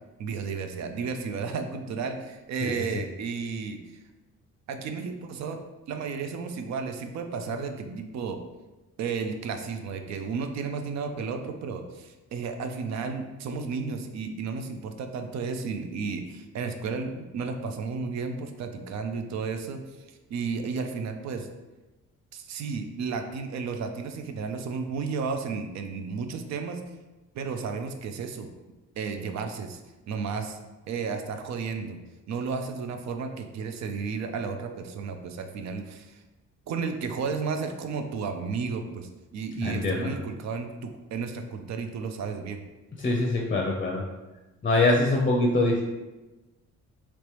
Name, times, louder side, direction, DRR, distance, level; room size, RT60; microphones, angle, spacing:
voice 1, 0.2-3.8 4.7-5.6 5.9-8.4 9.0-21.5 22.3-26.8 27.3-28.5 29.0-29.8 30.1-30.6 30.9-32.0 32.3-36.2 36.7-42.6, right 5 dB, 65° right, 6 dB, 0.5 m, -33 dB
voice 2, 39.6-40.1 43.0-44.0 44.6-45.8, left 2 dB, 30° left, 0 dB, 0.5 m, -24 dB
3.2 x 3.0 x 3.0 m, 1.1 s
cardioid pair, 90°, 30 cm